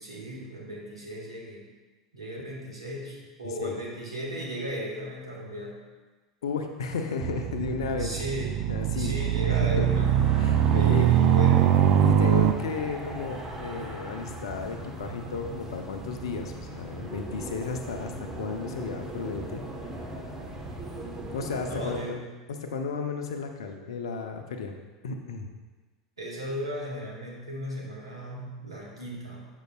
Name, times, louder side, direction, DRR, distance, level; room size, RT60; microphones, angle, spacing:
voice 1, 0.0-1.6 2.1-5.8 8.0-8.6 9.0-10.2 10.7-11.8 21.7-22.3 26.2-29.5, equal, 85° right, -2 dB, 1.4 m, -36 dB
voice 2, 6.4-8.2 8.7-9.9 10.3-11.1 12.0-18.1 18.4-19.6 21.3-22.2 22.5-24.8 25.0-25.5, left 5 dB, 70° left, 5 dB, 0.7 m, -33 dB
sound 1, 7.2-12.5, right 10 dB, 50° right, 0.3 m, -22 dB
sound 2, 9.7-22.0, right 1 dB, 20° right, 1.1 m, -39 dB
7.2 x 6.5 x 2.3 m, 1.3 s
figure-of-eight pair, 80°, 3 cm